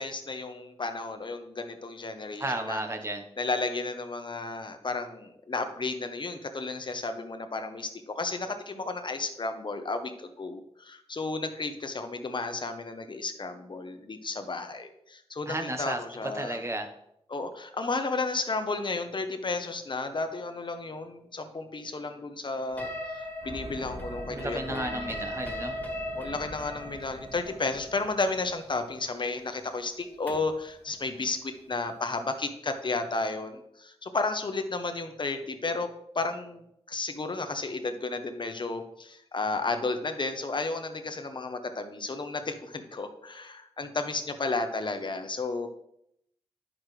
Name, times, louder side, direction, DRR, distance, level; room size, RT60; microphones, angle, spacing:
voice 1, 0.0-2.8 3.4-16.6 17.3-25.2 26.1-45.7, left 3 dB, 45° left, 7 dB, 1.0 m, -33 dB
voice 2, 2.4-3.2 15.5-16.0 16.3-16.9 24.3-25.7, right 1 dB, 25° right, 6 dB, 1.2 m, -33 dB
sound 1, 22.8-30.6, left 1 dB, 15° left, 2.2 m, -39 dB
sound 2, 23.4-29.6 29.9-30.0, right 1 dB, 55° right, 2.3 m, -45 dB
10.5 x 6.2 x 3.3 m, 0.77 s
wide cardioid pair, 80°, 11 cm